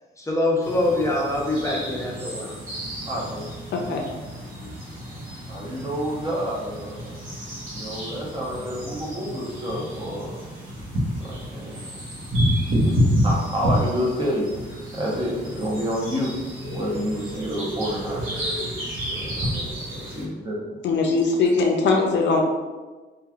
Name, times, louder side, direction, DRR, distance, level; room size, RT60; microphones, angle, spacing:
voice 1, 0.2-2.6, left 1 dB, 15° left, -2 dB, 0.6 m, -24 dB
sound 1, 0.6-20.2, equal, 85° right, 0.9 m, -29 dB
voice 2, 3.1-3.5 5.5-7.1 7.7-10.4 11.2-11.8 13.2-16.3 16.7-18.2 19.2-19.5 20.0-20.6, equal, 25° right, -4 dB, 0.9 m, -28 dB
voice 3, 3.7-4.0 4.6-4.8 20.8-22.4, left 3 dB, 65° left, 2 dB, 0.5 m, -21 dB
3.0 x 2.5 x 2.4 m, 1.3 s
cardioid pair, 90°, 20 cm